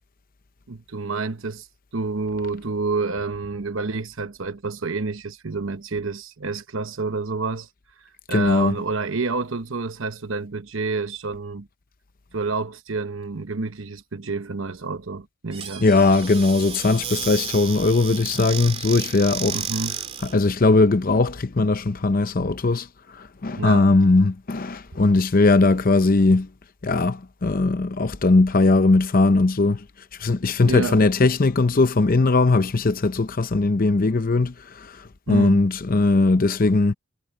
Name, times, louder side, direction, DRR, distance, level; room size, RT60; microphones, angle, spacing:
voice 1, 0.7-1.7 1.9-7.7 8.0-11.7 12.3-15.9 19.5-20.0 23.6-23.9 30.6-31.0 35.3-35.6, right 4 dB, 65° right, 1.0 m, -29 dB
voice 2, 8.3-8.8 15.8-19.6 20.2-26.5 26.8-29.8 30.2-36.9, left 3 dB, 40° left, 0.7 m, -19 dB
Squeak / Cupboard open or close, 15.5-20.4, right 7 dB, 30° right, 2.8 m, -33 dB
head